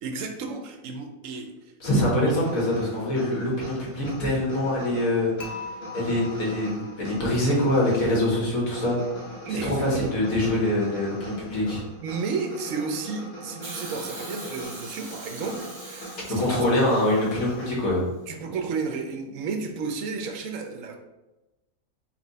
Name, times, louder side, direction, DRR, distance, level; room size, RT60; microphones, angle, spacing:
voice 1, 0.0-1.5 2.2-2.3 9.4-10.2 12.0-16.6 18.3-21.0, right 4 dB, 75° right, 5 dB, 1.0 m, -32 dB
voice 2, 1.8-5.5 5.9-11.8 16.4-18.0, left 1 dB, 85° left, -4 dB, 1.9 m, -24 dB
sound 1, 1.8-17.7, equal, 65° left, 1.5 m, -41 dB
Dishes pots and pans / Chink clink, 5.4-7.5, left 4 dB, 45° left, 0.6 m, -41 dB
Hiss, 13.6-17.8 18.8-18.9, right 2 dB, 50° right, 1.5 m, -42 dB
4.4 x 3.0 x 4.0 m, 1.0 s
omnidirectional pair, 1.4 m